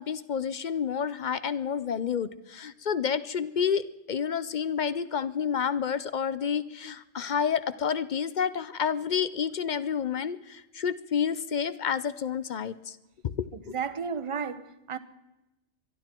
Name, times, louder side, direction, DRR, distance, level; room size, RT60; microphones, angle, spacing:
voice 1, 0.0-13.0 13.2-13.7, left 7 dB, 50° left, 0.6 m, -29 dB
voice 2, 13.7-15.0, right 6 dB, 30° right, 0.7 m, -33 dB
23.0 x 12.5 x 4.4 m
omnidirectional pair, 1.3 m